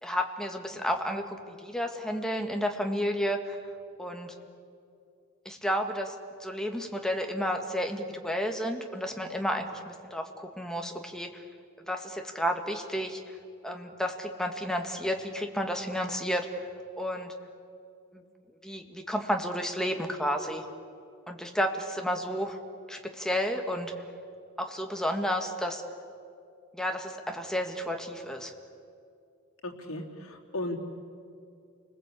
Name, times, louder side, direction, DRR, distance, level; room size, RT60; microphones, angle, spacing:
voice 1, 0.0-3.6 4.0-4.3 5.5-6.2 6.4-11.4 11.9-13.2 13.6-16.7 17.0-17.3 18.1-18.2 18.6-20.7 21.3-22.6 22.9-23.9 24.6-25.8 26.7-28.5, equal, 5° left, 3 dB, 1.9 m, -31 dB
voice 2, 29.6-30.8, left 2 dB, 80° left, 1 dB, 3.3 m, -35 dB
30.0 x 20.5 x 8.4 m, 2.5 s
head